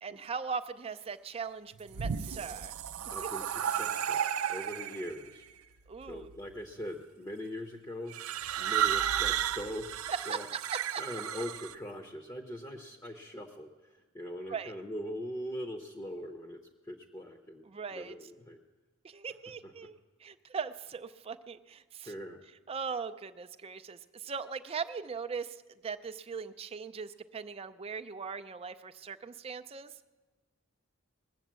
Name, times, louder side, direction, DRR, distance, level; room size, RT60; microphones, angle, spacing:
voice 1, 0.0-2.7 5.9-6.3 10.1-10.4 10.7-11.0 14.5-14.7 17.7-18.1 19.0-22.1 22.7-25.6 25.8-29.9, right 5 dB, 25° right, 10 dB, 0.4 m, -39 dB
sound 1, 1.7-5.2 6.1-6.5 8.1-11.7, right 9 dB, 80° right, 0.5 m, -33 dB
voice 2, 3.1-4.2 4.5-5.5 6.1-8.1 8.6-10.5 11.0-18.6 19.6-19.7 22.0-22.4, equal, 15° left, 4 dB, 0.7 m, -41 dB
19.0 x 7.9 x 7.4 m, 1.2 s
head